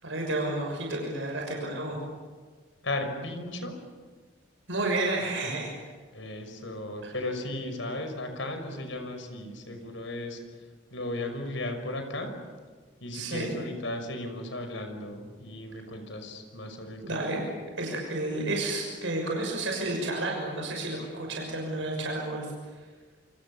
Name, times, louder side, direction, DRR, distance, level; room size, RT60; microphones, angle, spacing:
voice 1, 0.0-2.0 4.7-5.7 7.0-7.1 13.1-13.5 17.0-17.4 17.7-22.5, right 2 dB, 85° right, 0 dB, 6.4 m, -31 dB
voice 2, 2.8-3.7 6.1-10.4 10.9-12.3 13.0-17.2, left 1 dB, 80° left, 6 dB, 5.8 m, -35 dB
28.0 x 26.5 x 7.1 m, 1.5 s
head